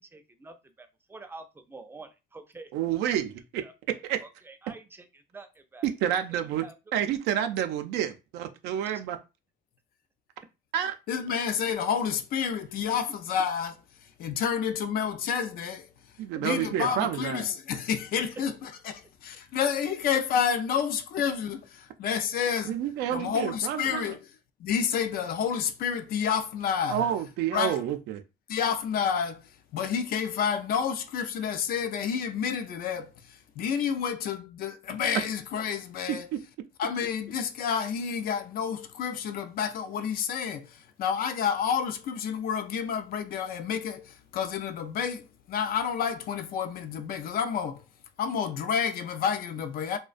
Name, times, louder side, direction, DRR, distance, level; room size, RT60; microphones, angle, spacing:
voice 1, 0.0-2.7 3.6-3.7 4.2-6.7 8.8-9.0 16.3-16.4, right 3 dB, 15° right, 0.4 m, -48 dB
voice 2, 2.7-3.3 4.1-4.2 5.8-6.6 6.9-9.2 10.7-11.0 16.2-17.5 22.6-24.1 26.9-28.2 36.3-36.4, right 10 dB, 90° right, 0.4 m, -29 dB
voice 3, 11.1-15.9 16.4-22.8 23.1-24.2 24.6-27.0 27.5-27.8 28.5-29.4 29.7-36.3 36.8-47.8 48.2-50.0, left 7 dB, 60° left, 0.4 m, -29 dB
2.4 x 2.1 x 2.4 m
cardioid pair, 110°, 17 cm